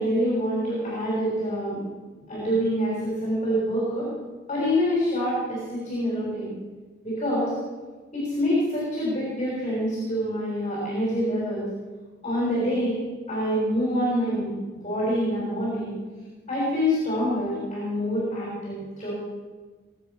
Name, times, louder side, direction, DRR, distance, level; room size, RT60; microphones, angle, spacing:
voice 1, 0.0-1.8 2.3-4.0 4.5-6.5 7.0-7.5 8.1-11.6 12.2-14.5 14.8-15.9 16.5-19.1, equal, 35° left, -6 dB, 6.6 m, -26 dB
23.5 x 8.8 x 6.6 m, 1.3 s
head